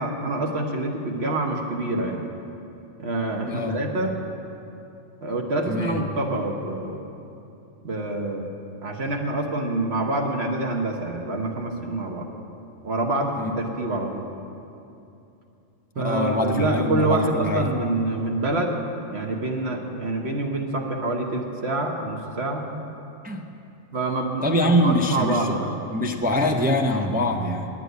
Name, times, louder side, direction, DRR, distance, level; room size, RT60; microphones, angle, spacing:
voice 1, 0.0-2.2 3.0-4.1 5.2-7.0 7.8-8.5 8.8-12.3 12.8-14.3 15.9-18.8 19.1-22.6 23.9-25.7, right 2 dB, 55° right, 1 dB, 1.3 m, -26 dB
voice 2, 3.5-3.8 5.7-6.0 13.4-13.5 16.0-17.7 22.7-22.8 23.2-23.4 24.4-25.5 25.9-27.7, equal, 15° right, 2 dB, 0.4 m, -23 dB
9.4 x 9.0 x 9.2 m, 2.7 s
omnidirectional pair, 1.3 m